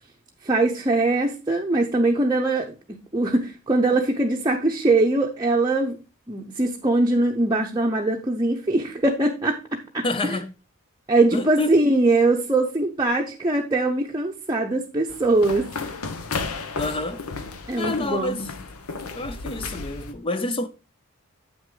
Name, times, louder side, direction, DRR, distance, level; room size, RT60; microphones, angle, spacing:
voice 1, 0.4-6.0 6.3-9.6 9.9-10.4 11.1-15.7 17.7-18.5, right 2 dB, 20° right, 0.7 m, -22 dB
voice 2, 10.0-10.5 11.3-11.8 16.8-17.2 17.8-18.7 19.1-20.7, left 2 dB, 25° left, 0.4 m, -28 dB
sound 1, 15.1-20.1, left 4 dB, 80° left, 0.9 m, -33 dB
8.0 x 6.1 x 3.8 m
head